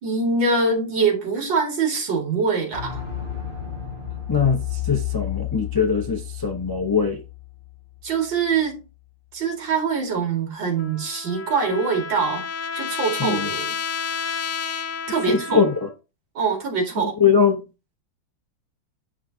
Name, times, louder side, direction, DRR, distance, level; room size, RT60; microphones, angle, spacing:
voice 1, 0.0-3.0 8.0-8.8 9.3-12.4 12.8-13.8 15.1-15.6 16.3-17.1, right 4 dB, 75° right, 2.8 m, -23 dB
sound 1, 2.7-8.4 8.7-8.8, left 11 dB, 25° right, 3.5 m, -32 dB
voice 2, 4.3-7.2 13.2-13.5 15.3-15.9 17.2-17.6, left 6 dB, 35° left, 0.3 m, -21 dB
Trumpet, 10.8-15.9, left 6 dB, 70° left, 0.7 m, -31 dB
9.1 x 5.8 x 2.8 m
omnidirectional pair, 2.1 m